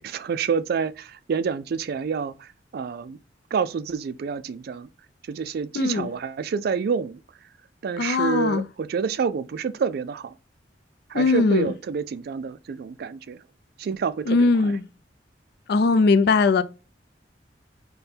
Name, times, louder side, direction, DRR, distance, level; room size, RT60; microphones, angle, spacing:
voice 1, 0.0-3.2 3.5-4.9 5.3-7.2 7.8-10.4 11.1-13.4 13.8-14.8, right 6 dB, 60° right, 0.3 m, -28 dB
voice 2, 5.7-6.1 8.0-8.7 11.1-11.7 14.3-14.8 15.7-16.6, left 4 dB, 65° left, 0.4 m, -20 dB
5.1 x 2.2 x 4.3 m
head